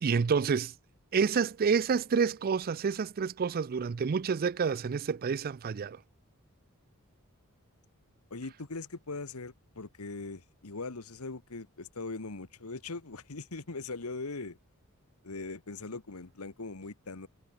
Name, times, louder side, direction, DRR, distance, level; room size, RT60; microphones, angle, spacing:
voice 1, 0.0-0.7 1.1-6.0, right 6 dB, 40° right, 0.4 m, -28 dB
voice 2, 8.3-14.6 15.2-17.3, left 3 dB, 75° left, 1.4 m, -40 dB
head